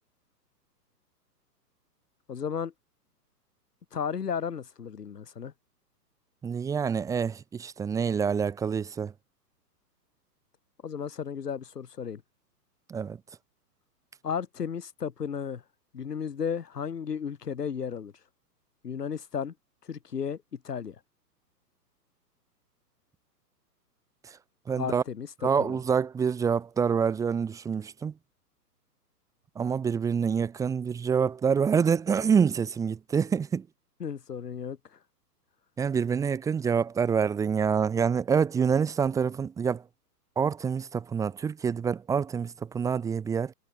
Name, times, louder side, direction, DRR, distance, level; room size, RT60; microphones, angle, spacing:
voice 1, 2.3-2.7 3.9-5.5 10.8-12.2 14.2-15.6 15.9-18.1 18.8-19.5 19.8-21.0 24.8-25.3 25.6-25.8 34.0-35.0, left 7 dB, 75° left, 4.7 m, -34 dB
voice 2, 6.4-9.1 12.9-13.2 24.2-24.4 24.7-25.0 25.4-28.1 29.6-33.7 35.8-39.9 40.4-43.5, right 6 dB, 5° right, 0.7 m, -26 dB
figure-of-eight pair, 125°, 49 cm